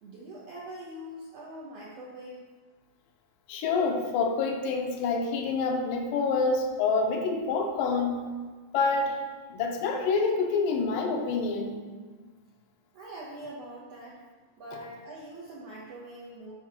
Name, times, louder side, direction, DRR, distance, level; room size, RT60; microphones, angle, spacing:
voice 1, 0.0-2.5 12.9-14.2 14.6-16.5, right 1 dB, 75° right, -5 dB, 1.4 m, -43 dB
voice 2, 3.5-8.3 8.7-9.2 9.5-11.8, left 4 dB, 80° left, 3 dB, 2.4 m, -27 dB
11.0 x 4.6 x 2.9 m, 1.4 s
omnidirectional pair, 4.0 m